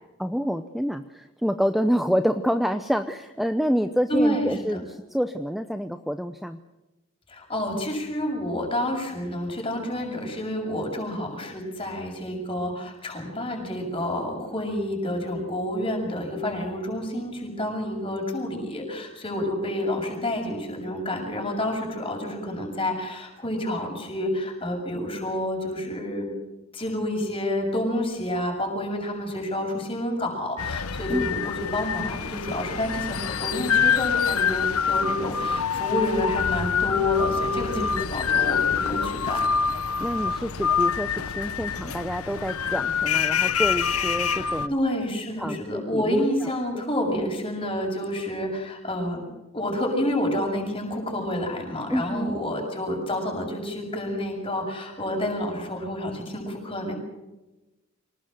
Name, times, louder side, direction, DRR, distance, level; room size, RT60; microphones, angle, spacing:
voice 1, 0.2-6.6 31.1-31.3 37.7-38.1 40.0-44.7 45.4-46.8 47.1-47.3 51.9-52.4, equal, ahead, 9 dB, 0.7 m, -27 dB
voice 2, 4.1-4.8 7.3-26.3 26.7-39.4 44.4-49.2 49.5-56.9, left 1 dB, 25° left, 1 dB, 7.0 m, -29 dB
sound 1, 30.6-44.7, left 7 dB, 85° left, 1.0 m, -26 dB
25.0 x 19.5 x 7.7 m, 1.0 s
head